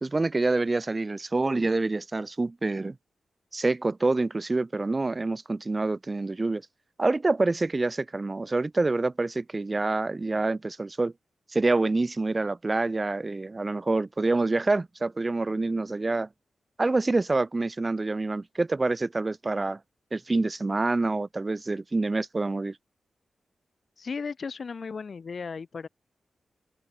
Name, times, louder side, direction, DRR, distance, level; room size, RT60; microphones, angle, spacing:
voice 1, 0.0-3.0 3.5-6.6 7.0-11.1 11.5-16.3 16.8-19.8 20.1-22.8, right 3 dB, 25° right, 0.3 m, -26 dB
voice 2, 24.0-25.9, left 5 dB, 45° left, 0.4 m, -35 dB
open air
wide cardioid pair, 150°, 0 cm